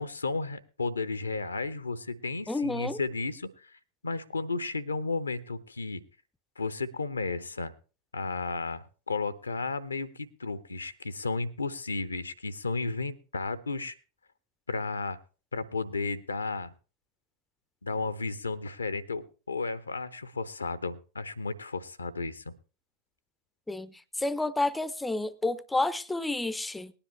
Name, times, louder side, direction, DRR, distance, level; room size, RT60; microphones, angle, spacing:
voice 1, 0.0-3.7 4.0-6.0 6.6-7.7 8.1-13.9 14.7-15.2 15.5-16.7 17.8-22.5, left 3 dB, 75° left, 0.8 m, -33 dB
voice 2, 2.5-3.0 23.7-26.9, left 2 dB, 5° left, 0.5 m, -30 dB
19.0 x 10.0 x 3.2 m
figure-of-eight pair, 90°, 0 cm